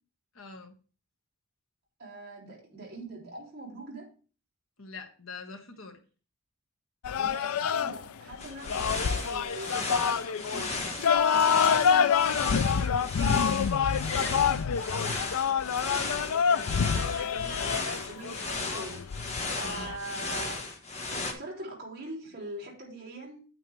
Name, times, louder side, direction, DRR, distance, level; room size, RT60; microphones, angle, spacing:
voice 1, 0.3-0.8 4.8-6.0 14.1-15.0 16.2-16.5 19.6-19.9, left 4 dB, 70° left, 1.5 m, -43 dB
voice 2, 2.0-4.1 7.1-13.5 16.1-19.0 19.5-20.6 21.1-23.4, right 2 dB, 45° right, 3.4 m, -43 dB
sound 1, 7.0-20.0, left 7 dB, 85° left, 0.4 m, -27 dB
sound 2, 8.4-21.3, left 3 dB, 30° left, 1.5 m, -35 dB
8.8 x 8.8 x 3.3 m
head